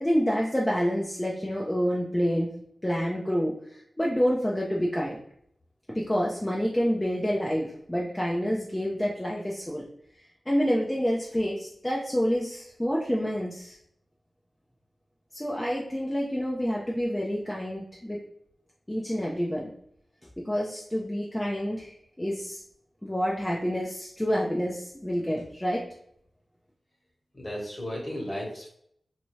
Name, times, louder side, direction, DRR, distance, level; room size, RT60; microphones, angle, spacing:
voice 1, 0.0-2.5 2.8-5.2 5.9-9.8 10.5-13.8 15.3-18.2 18.9-19.7 20.4-22.6 23.0-25.8, equal, 15° left, -4 dB, 0.5 m, -28 dB
voice 2, 27.3-28.7, equal, 40° left, -2 dB, 1.3 m, -34 dB
2.7 x 2.2 x 3.1 m, 0.69 s
cardioid pair, 40°, 0 cm